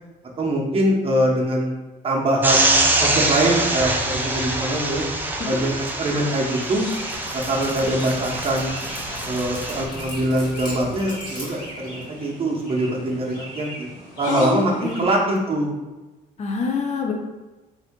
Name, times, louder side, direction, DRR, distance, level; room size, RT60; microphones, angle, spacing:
voice 1, 0.4-1.7 2.0-5.0 5.4-6.8 7.3-8.8 9.2-13.9 14.2-15.7, right 1 dB, 35° right, -1 dB, 0.9 m, -23 dB
sound 1, 2.4-9.8, right 2 dB, 10° right, 0.5 m, -24 dB
Chirp tweet, 6.0-15.0, equal, 75° left, 1.1 m, -40 dB
Dog, 6.5-12.3, equal, 25° left, 1.5 m, -38 dB
voice 2, 14.3-15.0 16.4-17.1, left 4 dB, 40° left, 2 dB, 0.6 m, -25 dB
3.6 x 2.6 x 3.6 m, 1.1 s
cardioid pair, 110°, 17 cm